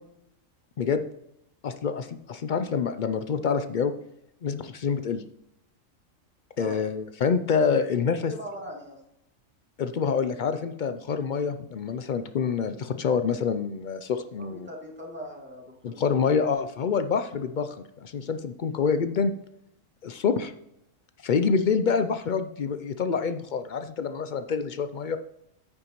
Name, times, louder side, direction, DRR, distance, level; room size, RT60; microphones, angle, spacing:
voice 1, 1.6-3.9 4.4-5.2 6.6-8.3 9.8-14.7 15.8-19.3 20.0-20.5 21.2-25.2, left 6 dB, 60° left, 9 dB, 0.5 m, -26 dB
voice 2, 8.3-9.0 12.4-12.6 14.4-16.6, equal, 10° right, -2 dB, 2.1 m, -41 dB
9.8 x 9.1 x 3.0 m, 0.80 s
omnidirectional pair, 1.4 m